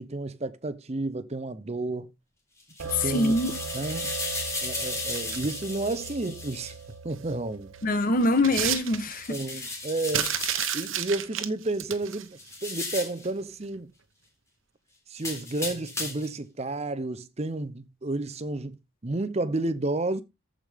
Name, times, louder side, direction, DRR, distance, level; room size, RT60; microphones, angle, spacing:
voice 1, 0.0-2.1 2.8-3.3 3.7-4.1 4.6-6.8 7.0-7.7 9.3-10.4 10.7-13.9 15.1-18.8 19.0-20.2, right 2 dB, 30° right, 0.7 m, -31 dB
sound 1, 2.6-6.7 9.1-11.0 12.4-13.3 15.2-16.4, left 2 dB, 15° left, 3.7 m, -35 dB
sound 2, 2.8-9.3, right 5 dB, 90° right, 1.4 m, -40 dB
voice 2, 2.9-3.5 7.8-9.4, left 2 dB, 45° left, 1.1 m, -24 dB
sound 3, 4.9-5.6 7.2-7.3 7.7-9.3 10.1-12.3 13.2-13.4 13.7-13.8, right 10 dB, 70° right, 0.9 m, -31 dB
14.0 x 5.1 x 3.5 m
head